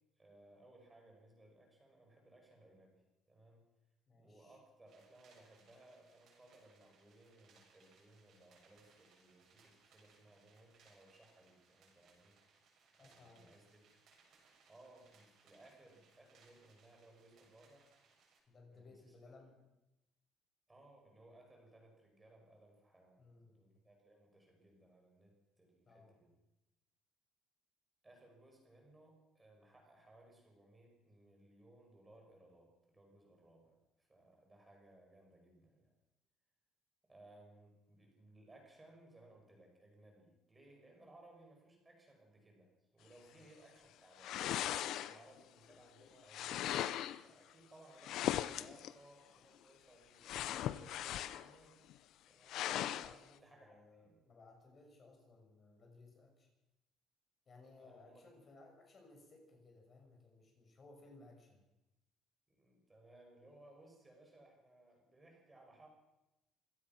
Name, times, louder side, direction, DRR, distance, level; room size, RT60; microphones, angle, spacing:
voice 1, 0.2-3.7 4.1-12.4 12.9-14.0 14.7-17.9 18.7-19.1 20.7-26.3 28.0-35.9 37.1-46.8 47.2-51.8 52.3-52.6 53.4-54.2 57.8-58.3 62.5-65.9, right 1 dB, 10° right, 1 dB, 6.3 m, -63 dB
voice 2, 4.1-4.6 13.0-13.5 18.5-19.5 23.2-23.6 25.8-26.2 43.3-43.5 52.7-56.5 57.5-61.6, left 3 dB, 30° left, 2 dB, 6.2 m, -61 dB
sound 1, 4.9-18.4, right 4 dB, 50° right, 7.1 m, -70 dB
sound 2, 44.2-45.4 46.3-47.2 48.0-48.9 50.2-51.5 51.9-52.0 52.5-53.1, left 12 dB, 60° left, 0.8 m, -38 dB
26.0 x 17.5 x 6.1 m, 0.95 s
cardioid pair, 175°, 0 cm